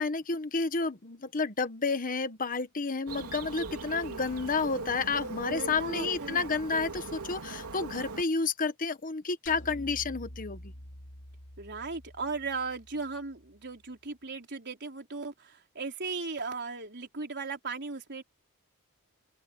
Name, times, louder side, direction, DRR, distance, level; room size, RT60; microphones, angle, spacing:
voice 1, 0.0-10.7, left 4 dB, 40° left, 1.1 m, -31 dB
Bird, 3.1-8.2, right 3 dB, 85° right, 3.3 m, -40 dB
voice 2, 5.5-6.5 11.6-18.2, right 4 dB, 50° right, 4.3 m, -37 dB
sound 1, 9.5-13.8, left 1 dB, 60° left, 3.0 m, -48 dB
open air
head